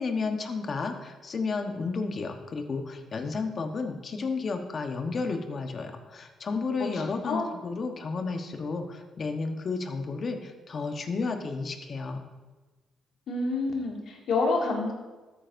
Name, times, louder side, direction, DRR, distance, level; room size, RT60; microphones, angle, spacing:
voice 1, 0.0-12.2, left 4 dB, 45° left, 5 dB, 1.1 m, -32 dB
voice 2, 13.3-14.9, left 3 dB, 70° left, 0 dB, 2.1 m, -27 dB
13.0 x 8.9 x 2.6 m, 1.2 s
cardioid pair, 90°, 0 cm